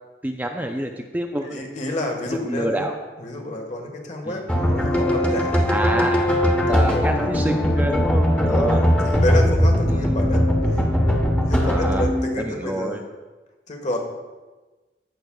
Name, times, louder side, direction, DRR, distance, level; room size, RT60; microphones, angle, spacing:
voice 1, 0.2-1.6 2.3-3.0 4.3-4.4 5.7-6.3 6.7-8.8 9.9-10.0 11.6-12.1 12.4-13.0, right 1 dB, 10° right, 2 dB, 0.5 m, -27 dB
voice 2, 1.4-2.9 3.2-5.7 6.7-7.2 8.4-10.8 11.5-13.0 13.7-14.0, left 1 dB, 45° left, 2 dB, 1.4 m, -29 dB
sound 1, 4.5-12.6, equal, 10° left, 1.1 m, -20 dB
15.5 x 6.1 x 2.3 m, 1.2 s
head